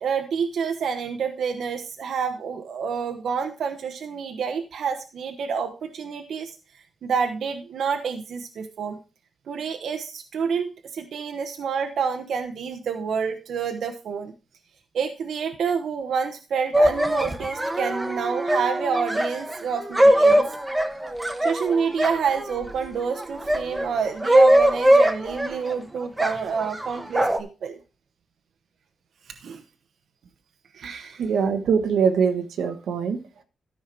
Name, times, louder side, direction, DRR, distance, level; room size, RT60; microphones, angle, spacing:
voice 1, 0.0-6.6 7.0-9.0 9.5-14.3 14.9-20.5 21.4-27.8 29.3-29.6 30.7-31.2, right 6 dB, 75° right, 5 dB, 1.0 m, -28 dB
sound 1, 16.7-22.7 23.2-25.7 26.2-27.4, right 1 dB, 10° right, 1.1 m, -21 dB
voice 2, 31.2-33.4, right 6 dB, 90° right, 7 dB, 1.3 m, -23 dB
13.5 x 5.6 x 4.4 m, 0.32 s
wide cardioid pair, 140°, 0 cm